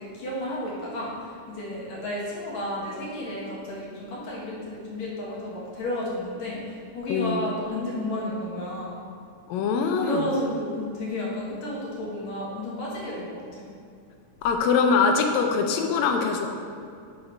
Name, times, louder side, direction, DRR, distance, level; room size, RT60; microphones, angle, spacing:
voice 1, 0.0-9.0 10.0-13.7, left 1 dB, 65° left, -5 dB, 2.3 m, -32 dB
voice 2, 7.1-7.5 9.5-10.2 14.4-16.5, left 5 dB, 80° left, 4 dB, 1.6 m, -23 dB
6.4 x 4.5 x 5.2 m, 2.4 s
omnidirectional pair, 3.8 m